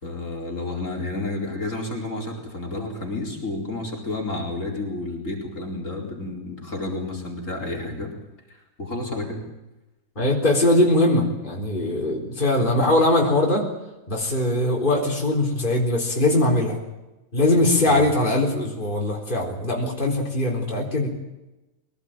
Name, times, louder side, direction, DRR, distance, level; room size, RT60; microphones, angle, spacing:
voice 1, 0.0-8.1 8.5-9.4 12.8-12.9 17.9-18.1, left 2 dB, 55° left, -1 dB, 4.8 m, -31 dB
voice 2, 10.2-13.7 14.1-16.8 17.3-21.1, left 1 dB, 30° left, -2 dB, 4.2 m, -21 dB
22.5 x 18.5 x 8.9 m, 1.0 s
omnidirectional pair, 1.6 m